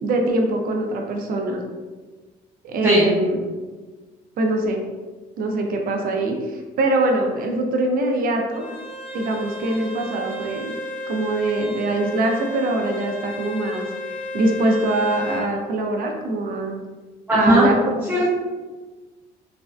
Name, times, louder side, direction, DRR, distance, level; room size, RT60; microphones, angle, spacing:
voice 1, 0.0-1.6 2.6-3.4 4.4-4.8 5.4-8.7 9.1-10.7 11.1-13.9 14.3-16.8 17.3-18.0, right 2 dB, 60° right, 2 dB, 0.5 m, -23 dB
Bowed string instrument, 8.5-15.5, left 1 dB, 40° left, 0.9 m, -33 dB
voice 2, 17.3-17.7 18.1-18.3, equal, 10° right, -9 dB, 0.7 m, -17 dB
3.3 x 2.1 x 2.4 m, 1.3 s
cardioid pair, 110°, 17 cm